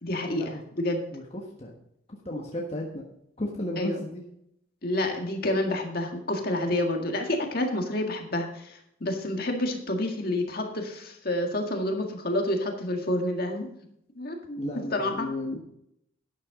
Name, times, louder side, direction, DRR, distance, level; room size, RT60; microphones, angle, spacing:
voice 1, 0.0-1.0 3.8-4.0 4.8-13.7 14.2-14.6 14.9-15.3, left 1 dB, 50° left, 2 dB, 1.9 m, -29 dB
voice 2, 1.1-1.8 2.2-3.0 3.4-4.2 14.6-15.6, left 1 dB, 30° left, -1 dB, 1.4 m, -33 dB
12.0 x 9.3 x 3.8 m, 0.74 s
head